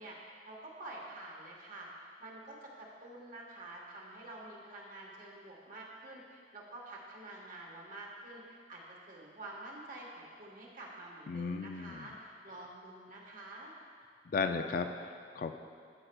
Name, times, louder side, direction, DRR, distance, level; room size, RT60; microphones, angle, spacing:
voice 1, 0.0-13.7, right 2 dB, 50° right, -2 dB, 1.3 m, -48 dB
voice 2, 11.3-12.1 14.3-15.5, left 4 dB, 50° left, 7 dB, 0.4 m, -35 dB
14.0 x 6.4 x 2.3 m, 2.2 s
head